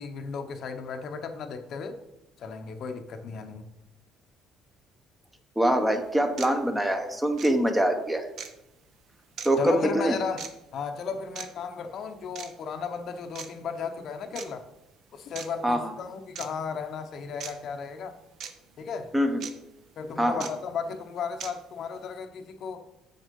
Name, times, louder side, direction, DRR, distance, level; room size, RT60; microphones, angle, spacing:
voice 1, 0.0-2.0 2.4-3.7 9.6-10.5 10.7-14.6 15.1-18.1 18.8-19.1 20.0-22.8, left 5 dB, 50° left, 7 dB, 0.8 m, -34 dB
voice 2, 5.6-8.3 9.4-10.2 15.6-15.9 19.1-19.4 20.2-20.5, right 1 dB, 10° right, 6 dB, 0.8 m, -24 dB
sound 1, 5.7-5.8 6.4-6.5 7.3-7.5 8.4-8.5 9.4-9.5 10.4-10.5 11.3-11.5 12.3-12.5 13.3-13.5 14.3-14.5 15.3-15.5 16.3-16.5 17.4-17.5 18.4-18.5 19.4-19.5 20.4-20.5 21.4-21.5, right 7 dB, 50° right, 0.9 m, -38 dB
7.4 x 6.3 x 5.3 m, 0.87 s
cardioid pair, 155°, 0 cm